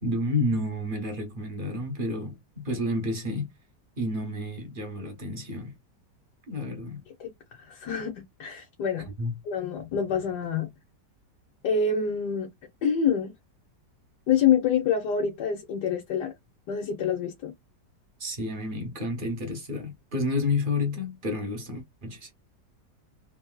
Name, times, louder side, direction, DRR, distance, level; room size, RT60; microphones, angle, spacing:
voice 1, 0.0-3.5 4.0-5.7 6.5-7.0 9.2-9.3 18.2-22.3, left 2 dB, 45° right, 0.7 m, -30 dB
voice 2, 7.5-9.1 9.4-10.7 11.6-12.5 12.8-13.3 14.3-16.3 16.7-17.5, left 7 dB, 75° left, 1.5 m, -26 dB
3.4 x 2.7 x 2.2 m
omnidirectional pair, 1.8 m